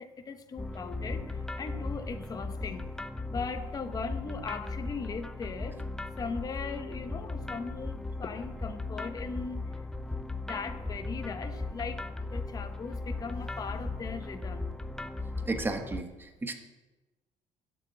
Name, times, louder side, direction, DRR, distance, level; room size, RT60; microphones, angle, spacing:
voice 1, 0.0-2.9 3.3-5.8 6.2-9.8 10.4-14.7, left 5 dB, 25° left, 8 dB, 0.9 m, -39 dB
sound 1, 0.6-16.0, left 2 dB, 5° left, 0.6 m, -37 dB
voice 2, 15.5-16.5, right 3 dB, 15° right, 5 dB, 1.2 m, -33 dB
11.5 x 7.0 x 8.5 m, 1.1 s
cardioid pair, 130°, 14 cm